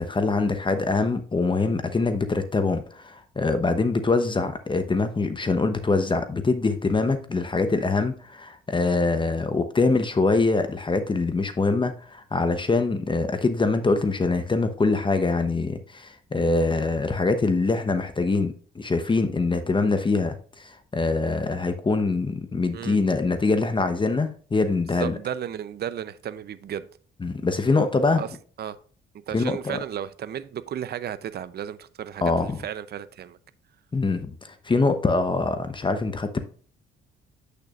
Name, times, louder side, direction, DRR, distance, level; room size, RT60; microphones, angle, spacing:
voice 1, 0.0-25.2 27.2-28.2 29.3-29.8 32.2-32.6 33.9-36.4, left 3 dB, 25° left, 0.9 m, -24 dB
voice 2, 25.0-26.9 28.2-28.3 28.6-28.8 29.3-33.4, right 9 dB, 55° right, 0.6 m, -34 dB
8.2 x 6.6 x 2.5 m
cardioid pair, 90°, 20 cm